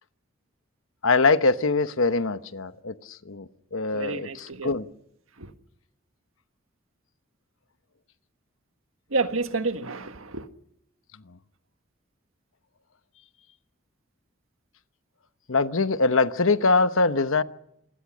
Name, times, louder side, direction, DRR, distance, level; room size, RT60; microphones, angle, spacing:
voice 1, 1.0-4.9 15.5-17.4, left 3 dB, 75° left, 11 dB, 1.0 m, -23 dB
voice 2, 3.9-4.7 9.1-10.4, right 3 dB, 80° right, 8 dB, 1.6 m, -29 dB
27.0 x 20.5 x 6.3 m, 0.76 s
head